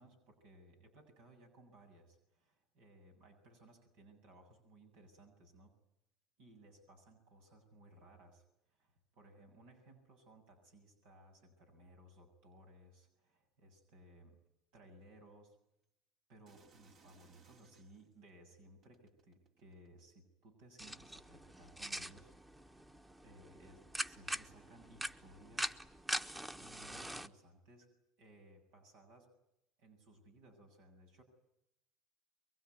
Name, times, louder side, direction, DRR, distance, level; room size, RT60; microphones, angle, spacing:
voice 1, 0.0-5.7 6.4-14.4 14.7-15.6 16.3-22.9 23.2-26.2 26.6-27.9 28.2-29.3 29.8-31.2, right 1 dB, 75° right, 3 dB, 7.6 m, -61 dB
sound 1, 16.5-18.1 18.8-20.2 21.1-21.2, right 5 dB, 50° right, 2.7 m, -66 dB
sound 2, 20.8-27.3, right 1 dB, 10° right, 1.3 m, -43 dB
24.5 x 23.0 x 9.6 m, 0.85 s
supercardioid pair, 95°, 0 cm